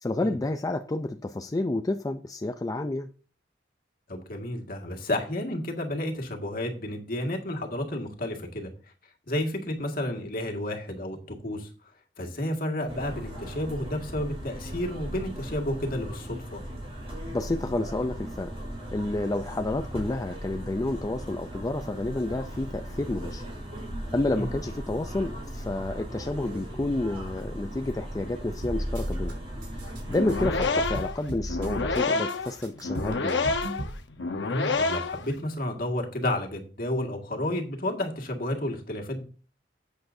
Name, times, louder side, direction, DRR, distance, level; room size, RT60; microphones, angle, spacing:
voice 1, 0.0-3.1 17.3-18.5 18.9-23.4 24.1-29.3 30.1-33.5, left 2 dB, 20° left, 0.4 m, -30 dB
voice 2, 4.1-8.7 9.3-11.2 11.4-11.7 12.2-16.6 24.4-24.5 30.7-30.8 34.4-39.2, left 1 dB, 55° left, 1.9 m, -31 dB
sound 1, 12.9-30.5, equal, 35° right, 5.2 m, -38 dB
sound 2, 28.6-29.3 29.6-32.0 32.3-34.0, right 1 dB, 90° right, 3.3 m, -34 dB
sound 3, 30.1-35.3, left 3 dB, 90° left, 0.9 m, -28 dB
11.0 x 8.1 x 2.7 m
head